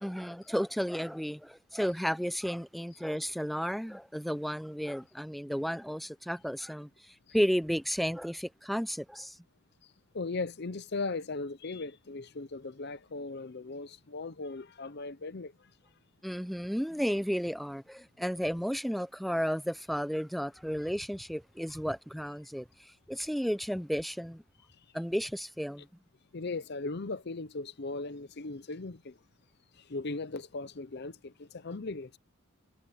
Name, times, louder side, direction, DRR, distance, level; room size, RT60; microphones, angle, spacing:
voice 1, 0.0-9.4 16.2-24.4 24.9-25.9, equal, ahead, 0.6 m, -33 dB
voice 2, 9.8-15.7 26.3-29.2 29.7-32.2, left 3 dB, 50° left, 0.7 m, -38 dB
head